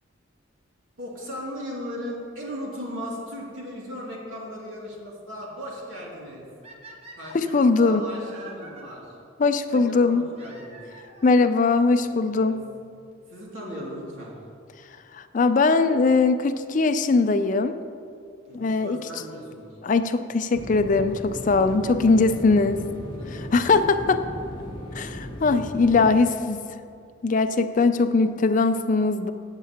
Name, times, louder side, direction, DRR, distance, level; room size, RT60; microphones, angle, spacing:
voice 1, 1.0-6.4 7.1-9.2 9.7-10.8 12.0-12.6 13.3-14.3 18.5-19.8 21.3-22.8 23.2-23.7, equal, 85° right, -4 dB, 2.6 m, -38 dB
sound 1, 6.6-8.8 10.3-11.4 12.3-12.4 13.1-13.2 13.4-13.5 15.4-15.6 18.4-18.5 19.6-19.7 21.1-21.2 21.5-21.6 21.8-21.9 22.1-22.2 22.4-22.5 22.6-22.7 23.0-23.1, right 3 dB, 30° right, 1.0 m, -47 dB
voice 2, 7.3-8.0 9.4-10.2 11.2-12.6 15.1-17.8 18.5-19.0 19.8-22.9 23.5-24.2 24.9-26.6 27.2-29.3, left 3 dB, 40° left, 10 dB, 0.4 m, -21 dB
sound 2, 20.5-26.1, equal, 25° left, 1.2 m, -36 dB
17.5 x 7.5 x 2.9 m, 2.4 s
head